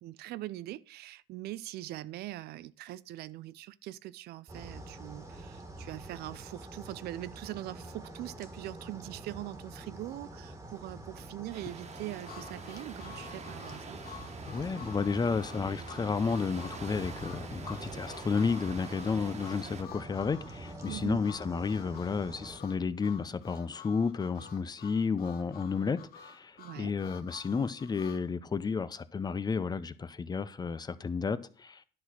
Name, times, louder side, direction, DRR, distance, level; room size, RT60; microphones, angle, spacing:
voice 1, 0.0-14.0 20.9-21.2 26.6-26.9, right 15 dB, 75° right, 0.4 m, -42 dB
sound 1, 4.5-22.6, right 1 dB, 15° right, 1.6 m, -46 dB
sound 2, 11.5-19.8, right 5 dB, 40° right, 1.4 m, -47 dB
Harmonica, 12.2-28.2, left 7 dB, 65° left, 1.1 m, -50 dB
voice 2, 14.5-31.8, left 5 dB, 25° left, 0.6 m, -32 dB
11.0 x 4.1 x 6.2 m
cardioid pair, 110°, 17 cm